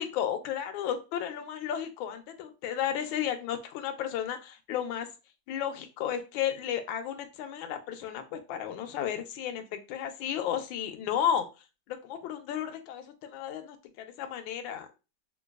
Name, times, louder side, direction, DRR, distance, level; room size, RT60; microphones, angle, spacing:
voice 1, 0.0-5.1 5.5-11.5 11.9-14.9, left 9 dB, 75° left, 7 dB, 1.2 m, -33 dB
4.4 x 2.2 x 2.3 m, 0.30 s
omnidirectional pair, 2.4 m